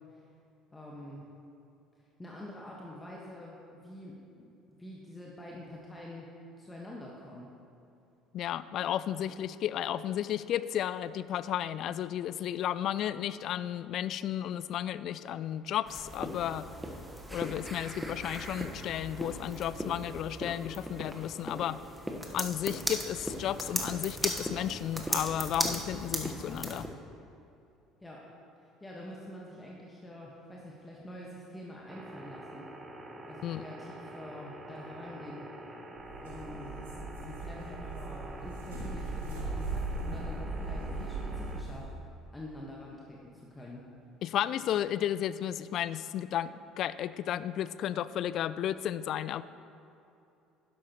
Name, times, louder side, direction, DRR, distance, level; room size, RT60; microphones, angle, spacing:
voice 1, 0.7-1.3 2.2-4.2 4.8-6.3 6.6-7.5 9.1-9.3 28.0-28.2 28.6-32.7 33.3-35.5 36.2-36.7 37.2-41.9 42.3-43.9, left 1 dB, 15° left, -3 dB, 1.5 m, -46 dB
voice 2, 8.3-16.7 17.3-21.8 22.3-26.9 33.4-33.6 44.2-49.4, left 11 dB, 55° left, 16 dB, 0.3 m, -33 dB
sound 1, 15.9-26.9, right 1 dB, 10° right, 1.3 m, -37 dB
sound 2, 31.9-41.6, right 1 dB, 30° right, 1.1 m, -46 dB
sound 3, 36.0-41.9, right 2 dB, 80° right, 2.5 m, -38 dB
11.5 x 11.5 x 3.1 m, 2.8 s
figure-of-eight pair, 60°, 0 cm